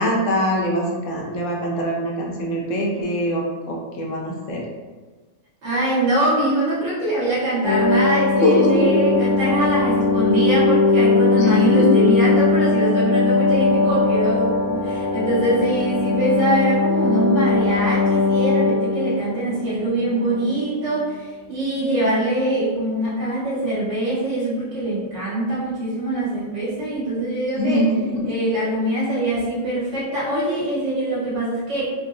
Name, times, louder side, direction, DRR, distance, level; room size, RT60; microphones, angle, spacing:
voice 1, 0.0-4.6 8.4-8.9 11.4-11.9 27.5-28.3, equal, 65° left, -1 dB, 1.0 m, -22 dB
voice 2, 5.6-27.8 28.2-31.9, right 1 dB, 55° right, -9 dB, 1.5 m, -23 dB
sound 1, 7.6-20.7 21.0-21.1, left 3 dB, 80° left, 1.1 m, -20 dB
3.4 x 2.8 x 2.6 m, 1.3 s
omnidirectional pair, 1.5 m